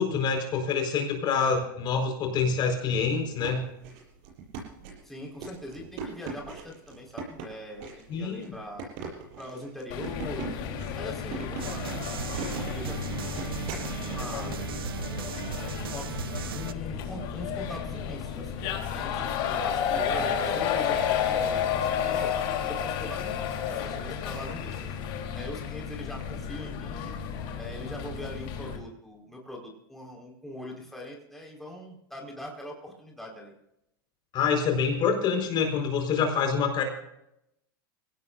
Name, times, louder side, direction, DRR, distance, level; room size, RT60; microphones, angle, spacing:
voice 1, 0.0-3.6 8.1-8.6 34.3-36.8, left 5 dB, 40° left, 3 dB, 4.6 m, -26 dB
sound 1, 3.2-13.9, right 5 dB, 60° right, 7.6 m, -40 dB
voice 2, 5.0-8.9 9.4-10.5 10.9-13.4 14.0-14.6 15.9-16.1 16.5-24.8 25.3-27.2 27.6-33.5, left 1 dB, ahead, -2 dB, 4.7 m, -42 dB
sound 2, 9.9-28.8, left 8 dB, 55° left, 3.6 m, -32 dB
sound 3, 11.6-16.7, right 9 dB, 85° right, 0.9 m, -36 dB
23.0 x 17.0 x 2.6 m, 0.81 s
hypercardioid pair, 110°, 12 cm